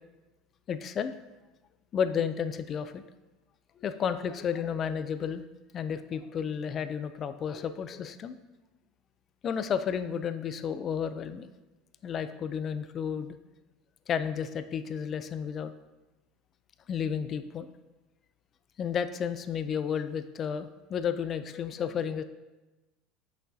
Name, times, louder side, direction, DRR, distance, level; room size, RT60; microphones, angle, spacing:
voice 1, 0.7-1.1 1.9-3.0 3.8-5.4 5.7-8.4 9.4-11.5 12.0-13.4 14.1-15.7 16.9-17.7 18.8-22.2, left 7 dB, 35° left, 11 dB, 0.4 m, -32 dB
7.9 x 6.2 x 2.7 m, 1.1 s
supercardioid pair, 125°, 0 cm